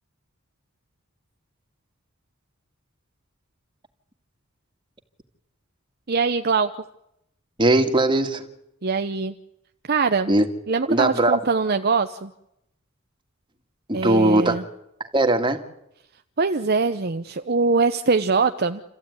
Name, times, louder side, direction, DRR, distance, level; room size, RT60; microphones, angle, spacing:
voice 1, 6.1-6.7 8.8-9.3 9.9-10.3 10.7-12.3 13.9-14.6 16.4-18.8, right 4 dB, 50° right, 8 dB, 0.8 m, -22 dB
voice 2, 7.6-8.4 10.3-10.5 10.9-11.4 13.9-14.6 15.1-15.6, right 1 dB, 25° right, 5 dB, 2.2 m, -19 dB
28.5 x 15.0 x 9.6 m, 0.83 s
head